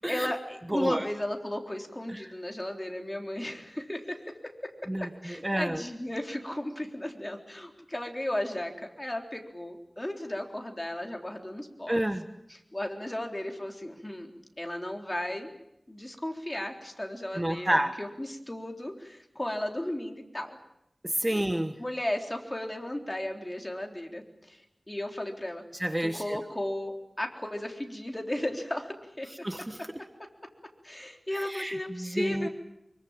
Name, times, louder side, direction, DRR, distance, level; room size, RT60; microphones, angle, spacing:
voice 1, 0.1-4.3 5.2-12.1 12.5-14.3 14.6-15.5 15.9-17.7 18.0-20.6 21.3-21.4 21.8-25.6 26.0-29.3 30.8-32.5, left 1 dB, 20° left, 3 dB, 3.8 m, -35 dB
voice 2, 0.7-1.0 2.1-2.2 4.9-5.8 11.9-12.3 17.3-17.9 21.0-21.8 25.8-26.4 29.4-29.8 31.4-32.5, right 1 dB, 20° right, 8 dB, 1.4 m, -29 dB
24.5 x 23.5 x 9.0 m, 0.83 s
wide cardioid pair, 75°, 0 cm